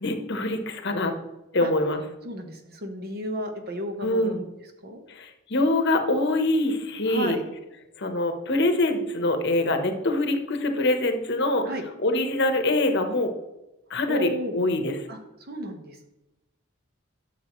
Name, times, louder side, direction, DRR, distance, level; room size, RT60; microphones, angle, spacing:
voice 1, 0.0-1.1 1.5-2.0 4.0-4.4 5.1-7.4 8.0-13.3 13.9-15.0, left 2 dB, 55° left, 6 dB, 1.0 m, -24 dB
voice 2, 2.2-4.4 4.8-5.0 7.1-7.4 11.6-11.8 14.1-14.6 15.1-15.2 15.5-16.1, right 1 dB, 45° right, 5 dB, 1.1 m, -33 dB
10.5 x 6.8 x 3.1 m, 0.96 s
head